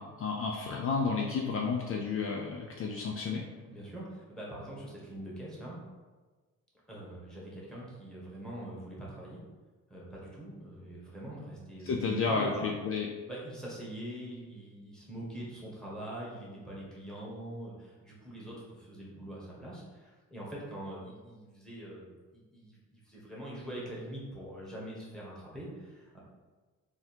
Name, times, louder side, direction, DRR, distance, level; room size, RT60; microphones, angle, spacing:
voice 1, 0.0-3.4 11.8-13.1, left 4 dB, 45° left, 0 dB, 0.5 m, -31 dB
voice 2, 3.6-5.8 6.9-9.4 9.9-12.7 13.3-26.2, right 1 dB, ahead, -6 dB, 1.3 m, -43 dB
3.4 x 2.3 x 4.4 m, 1.3 s
cardioid pair, 90°, 30 cm